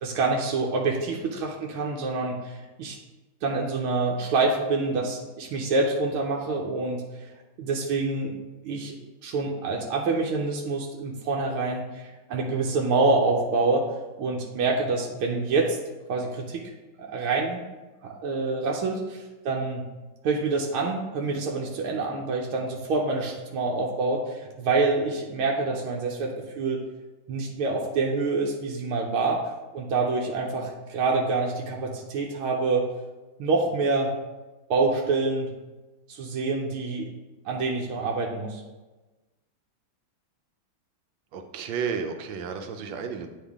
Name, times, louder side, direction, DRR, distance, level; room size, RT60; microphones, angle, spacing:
voice 1, 0.0-3.0 3.4-7.2 7.6-8.3 8.6-9.0 9.2-13.9 14.2-15.8 16.1-16.6 17.0-17.6 18.0-19.8 20.2-26.8 27.3-29.4 29.7-32.9 33.4-34.1 34.7-35.5 36.1-37.1 37.4-38.6, right 3 dB, 90° right, -1 dB, 1.6 m, -26 dB
voice 2, 41.3-43.3, right 6 dB, 75° right, 6 dB, 1.4 m, -32 dB
9.1 x 3.6 x 3.5 m, 1.2 s
omnidirectional pair, 2.3 m